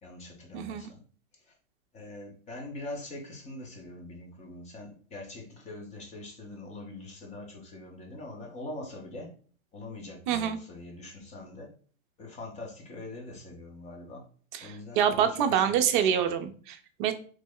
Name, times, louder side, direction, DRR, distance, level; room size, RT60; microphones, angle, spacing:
voice 1, 0.0-1.0 1.3-1.5 1.9-9.3 9.7-11.7 12.2-14.3 14.6-16.3, left 2 dB, 15° left, 1 dB, 0.6 m, -43 dB
voice 2, 10.3-10.6 14.5-17.1, right 8 dB, 40° right, 7 dB, 0.4 m, -26 dB
3.0 x 2.1 x 3.6 m, 0.43 s
hypercardioid pair, 130°, 41 cm